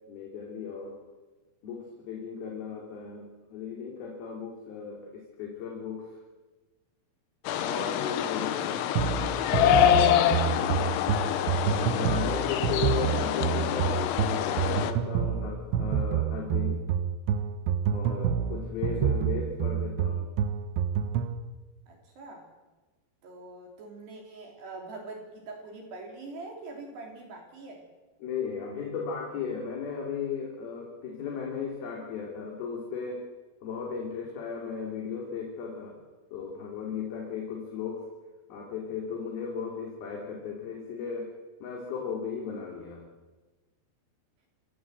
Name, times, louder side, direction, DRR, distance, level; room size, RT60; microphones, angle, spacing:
voice 1, 0.1-1.0 1.6-6.2 7.6-9.0 10.5-10.9 11.9-16.9 17.9-20.3 28.2-33.3 33.6-38.1 38.5-41.3 41.6-43.1, left 6 dB, 55° left, 0 dB, 4.6 m, -36 dB
sound 1, 7.5-14.9, left 11 dB, 75° left, 3.5 m, -26 dB
voice 2, 9.0-10.3 21.9-22.5 23.2-27.9, right 3 dB, 60° right, 1 dB, 5.1 m, -44 dB
sound 2, 9.0-21.4, right 8 dB, 75° right, 3.2 m, -28 dB
28.5 x 16.5 x 7.9 m, 1.2 s
omnidirectional pair, 5.6 m